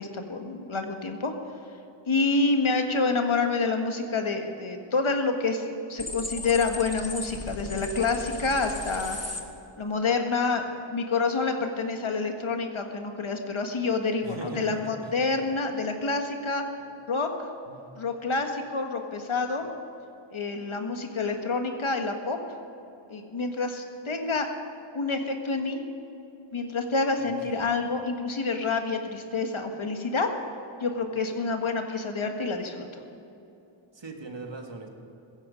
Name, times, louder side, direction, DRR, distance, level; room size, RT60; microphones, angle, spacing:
voice 1, 0.0-1.3 2.1-5.6 5.9-9.2 9.8-16.6 17.1-17.3 18.0-19.7 20.3-22.4 23.1-24.5 24.9-25.8 26.5-30.3 30.8-32.8, left 3 dB, 70° left, 5 dB, 1.6 m, -28 dB
sound 1, 6.0-9.4, left 2 dB, 30° left, 1.4 m, -36 dB
voice 2, 14.2-15.1 17.7-17.9 27.2-27.7 33.9-34.9, right 3 dB, 60° right, 3 dB, 1.9 m, -40 dB
16.0 x 14.5 x 5.2 m, 2.9 s
wide cardioid pair, 55°, 50 cm